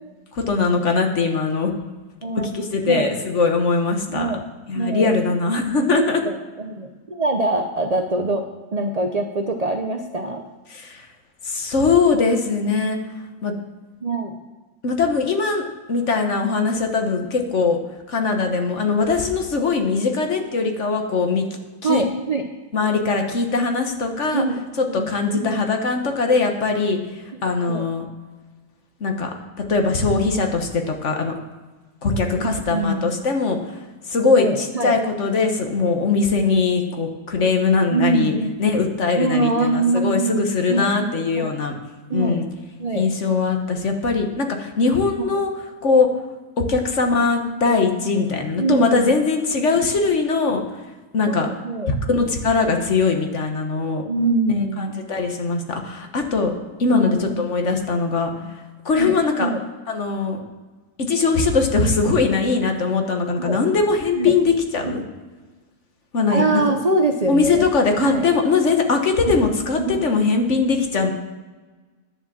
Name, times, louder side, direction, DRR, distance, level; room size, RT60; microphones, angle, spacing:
voice 1, 0.3-1.7 2.5-4.4 4.7-6.2 10.7-11.0 11.4-13.0 13.4-13.5 14.8-17.8 18.1-21.5 21.8-22.0 22.7-24.4 24.9-27.0 27.4-28.1 29.0-29.3 29.7-31.4 32.0-33.6 34.1-38.3 38.6-41.7 42.1-42.4 42.9-45.5 45.8-46.1 46.6-50.6 51.1-51.5 51.9-54.0 54.5-56.5 56.8-58.3 58.8-59.5 59.9-60.4 61.1-65.0 66.1-66.6 67.3-71.1, left 4 dB, 50° left, 4 dB, 1.4 m, -21 dB
voice 2, 2.2-3.1 4.1-4.4 4.7-5.1 5.8-8.4 8.7-10.4 14.0-14.3 21.8-22.5 24.3-24.6 24.9-25.1 25.3-25.7 27.7-27.9 32.3-33.1 34.3-35.0 37.9-38.5 39.1-41.5 42.1-42.4 42.8-43.1 45.2-45.3 48.6-49.1 51.3-51.9 54.1-55.0 56.9-57.4 58.4-58.5 59.0-59.6 63.4-63.6 64.1-64.3 64.8-64.9 66.3-67.6 68.0-68.2 69.3-69.4 69.8-70.0, right 2 dB, 40° right, 4 dB, 0.5 m, -24 dB
10.5 x 7.3 x 7.4 m, 1.3 s
omnidirectional pair, 1.7 m